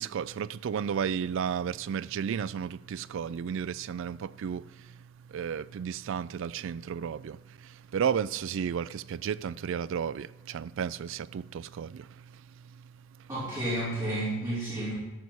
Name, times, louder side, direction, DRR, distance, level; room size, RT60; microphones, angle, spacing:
voice 1, 0.0-13.3, right 7 dB, 65° right, 0.3 m, -33 dB
voice 2, 13.3-14.9, right 1 dB, 20° right, 3.8 m, -31 dB
14.0 x 5.4 x 6.3 m
head